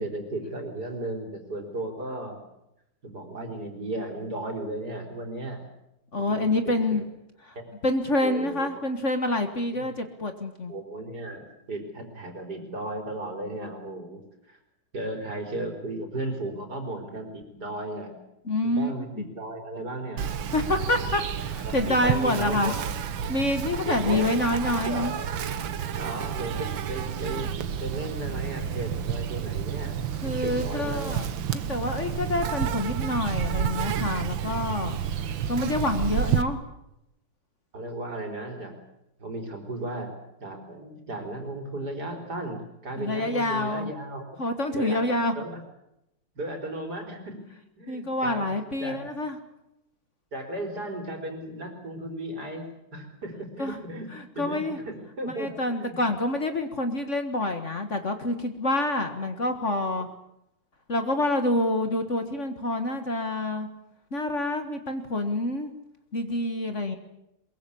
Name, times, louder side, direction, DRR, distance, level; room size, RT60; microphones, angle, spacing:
voice 1, 0.0-2.4 3.0-5.6 6.1-7.0 7.5-7.7 8.2-8.8 9.8-9.9 10.7-14.2 14.5-14.6 14.9-18.1 18.6-20.4 20.8-21.0 21.5-22.7 23.8-24.2 24.8-25.1 25.9-31.2 35.2-35.3 37.7-38.8 39.2-40.1 40.4-44.3 44.7-45.6 46.4-47.4 47.8-48.5 48.8-49.0 50.3-54.1 54.3-56.0 59.2-59.3 60.0-60.1, right 1 dB, 55° right, 4 dB, 4.5 m, -35 dB
voice 2, 6.1-7.0 7.4-7.6 7.8-10.7 18.5-19.3 20.5-21.2 21.5-22.7 23.3-25.1 30.2-31.3 31.5-35.0 35.5-36.6 43.0-43.9 44.4-45.3 47.9-49.4 53.6-53.8 54.1-54.8 55.2-60.1 60.9-63.7 64.1-65.7 66.1-67.0, left 1 dB, 40° left, 7 dB, 1.8 m, -27 dB
Insect, 20.2-36.4, right 8 dB, 85° right, 1.9 m, -30 dB
22.5 x 22.0 x 8.5 m, 0.85 s
omnidirectional pair, 2.1 m